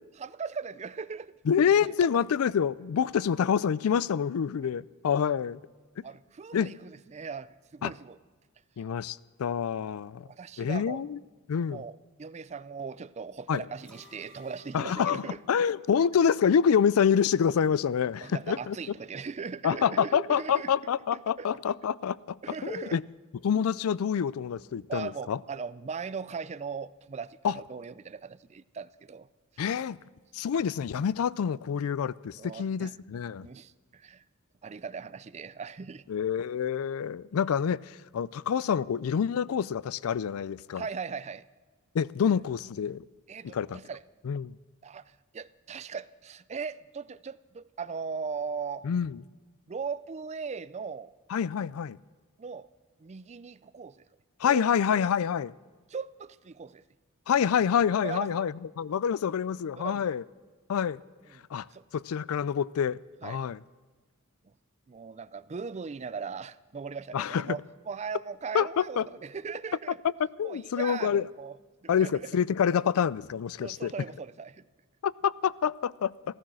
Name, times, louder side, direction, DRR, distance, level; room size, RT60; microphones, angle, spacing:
voice 1, 0.2-1.3 2.1-2.2 6.0-8.2 10.2-11.0 11.7-15.4 18.2-20.7 21.4-21.5 22.4-23.0 24.9-29.3 29.6-29.7 32.4-32.9 33.4-34.2 34.6-36.0 40.7-41.4 43.3-44.0 44.8-48.8 49.7-51.1 52.4-52.7 53.0-54.0 54.4-54.6 55.9-56.8 58.0-58.5 59.8-60.2 61.3-61.4 61.7-61.8 63.2-63.4 64.9-70.0 70.4-71.6 71.8-72.4 73.6-74.6, right 5 dB, 30° right, 0.4 m, -39 dB
voice 2, 1.5-5.6 6.5-6.7 7.8-7.9 8.8-10.3 10.6-11.2 11.5-11.8 13.5-13.6 14.7-18.8 19.6-22.4 22.6-23.0 23.4-25.4 27.4-27.6 29.6-30.0 30.3-33.5 36.1-40.9 41.9-43.1 43.4-43.8 44.2-44.5 48.8-49.2 51.3-52.0 54.4-55.5 57.3-60.2 60.7-61.0 61.5-61.7 61.9-63.6 67.1-67.6 68.5-69.0 70.2-71.2 71.9-73.9 75.0-76.1, left 7 dB, 70° left, 0.4 m, -27 dB
sound 1, 13.7-16.9 17.2-17.3, equal, 5° left, 2.1 m, -59 dB
14.5 x 14.5 x 6.2 m
head